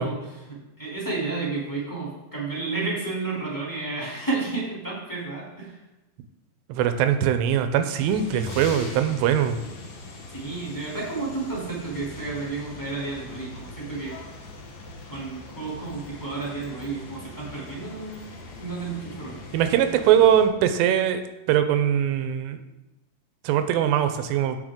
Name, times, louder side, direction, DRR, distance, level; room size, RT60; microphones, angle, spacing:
voice 1, 0.0-5.8 10.3-14.2 15.1-18.2 18.6-19.4, right 3 dB, 5° left, -6 dB, 2.0 m, -31 dB
voice 2, 6.7-9.6 19.5-21.2 21.5-22.6 23.4-24.6, right 9 dB, 80° right, 8 dB, 2.8 m, -21 dB
sound 1, 8.0-20.5, left 3 dB, 85° left, 1.5 m, -41 dB
16.5 x 5.7 x 3.7 m, 1.0 s
omnidirectional pair, 5.1 m